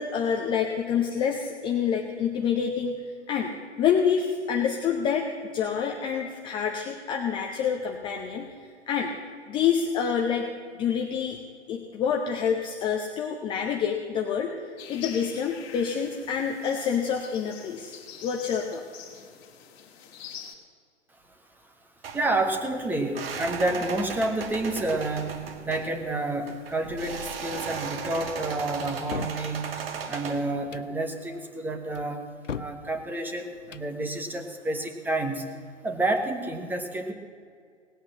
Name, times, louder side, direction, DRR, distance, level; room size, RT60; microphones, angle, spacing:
voice 1, 0.0-5.3 5.5-8.5 8.9-9.1 9.5-10.5 10.8-11.4 11.7-14.5 14.9-17.9 18.2-18.8, left 7 dB, 15° left, 2 dB, 0.7 m, -27 dB
sound 1, 14.8-20.5, left 8 dB, 30° left, 2.1 m, -45 dB
sound 2, 22.0-30.5, right 5 dB, 50° right, 1.7 m, -36 dB
voice 2, 22.1-25.4 25.6-29.7 30.1-32.2 32.5-35.5 35.8-37.1, right 2 dB, 5° right, 4 dB, 1.1 m, -29 dB
sound 3, 28.8-29.4 30.6-30.9 31.9-32.8 33.6-33.9, left 7 dB, 80° left, 0.8 m, -37 dB
18.5 x 8.4 x 7.4 m, 2.2 s
figure-of-eight pair, 120°, 36 cm